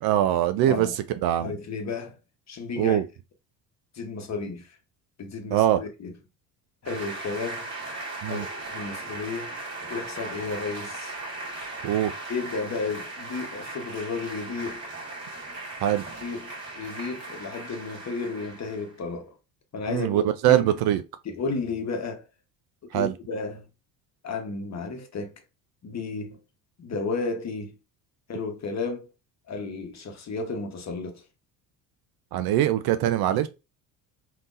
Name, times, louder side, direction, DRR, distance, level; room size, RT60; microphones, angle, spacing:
voice 1, 0.0-0.9 1.2-1.5 2.8-3.1 5.5-5.8 8.2-8.4 11.8-12.1 15.8-16.0 19.9-21.0 22.9-23.1 32.3-33.5, right 12 dB, 50° right, 0.5 m, -22 dB
voice 2, 0.6-1.0 1.4-2.2 2.5-3.0 3.9-4.8 5.2-6.1 6.8-7.7 8.3-9.6 9.9-11.1 12.3-14.8 16.2-19.3 19.7-20.8 21.2-22.2 22.8-23.6 24.2-25.3 25.8-26.4 26.8-27.7 28.3-29.1 29.5-31.2, left 4 dB, 35° left, 1.0 m, -33 dB
sound 1, 6.8-18.9, right 2 dB, 30° right, 1.8 m, -38 dB
3.5 x 2.8 x 2.5 m
hypercardioid pair, 60°, 49 cm